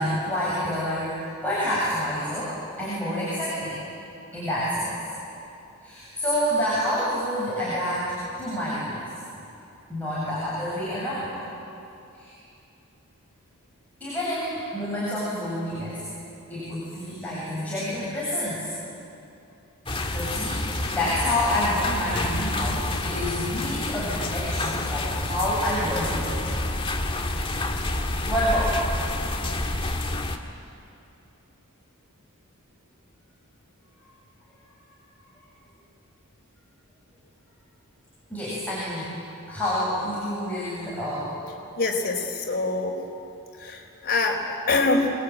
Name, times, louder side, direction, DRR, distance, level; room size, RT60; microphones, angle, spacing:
voice 1, 0.0-2.5 2.8-3.8 4.3-4.9 5.8-8.1 8.4-9.0 9.9-11.4 12.1-12.3 14.0-16.0 16.5-18.7 20.0-26.5 27.1-27.2 28.3-28.8 38.3-39.1 39.5-41.3, left 1 dB, 5° left, -10 dB, 7.9 m, -28 dB
sound 1, 19.9-30.4, left 2 dB, 25° left, 1.8 m, -28 dB
voice 2, 41.8-43.0 43.6-45.1, left 3 dB, 45° left, 1 dB, 4.3 m, -25 dB
28.0 x 21.5 x 9.4 m, 2.7 s
head